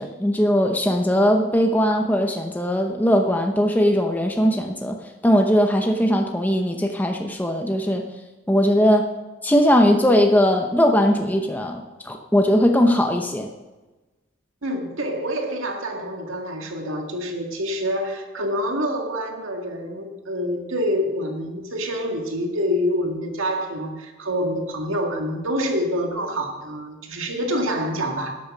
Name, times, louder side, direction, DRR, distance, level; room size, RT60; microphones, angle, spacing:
voice 1, 0.0-5.0 5.2-8.0 8.5-9.1 9.4-13.5, equal, 10° left, 3 dB, 0.8 m, -19 dB
voice 2, 14.6-28.4, equal, 90° right, 3 dB, 2.0 m, -26 dB
12.0 x 8.6 x 6.0 m, 1.2 s
head